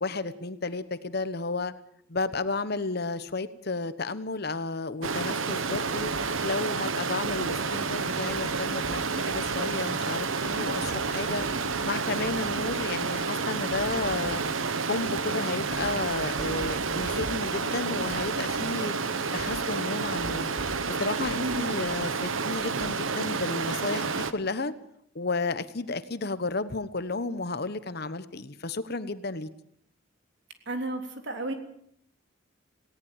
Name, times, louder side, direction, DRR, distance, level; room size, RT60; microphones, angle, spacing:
voice 1, 0.0-1.7 2.1-6.1 6.4-11.4 11.8-14.4 14.8-18.9 19.3-20.5 20.9-24.7 25.1-29.5, left 3 dB, 50° left, 13 dB, 1.1 m, -32 dB
Stream, 5.0-24.3, right 4 dB, 85° right, 1.3 m, -30 dB
voice 2, 21.4-21.7 30.6-31.5, right 1 dB, 60° right, 5 dB, 3.4 m, -33 dB
19.0 x 17.5 x 9.0 m, 0.69 s
head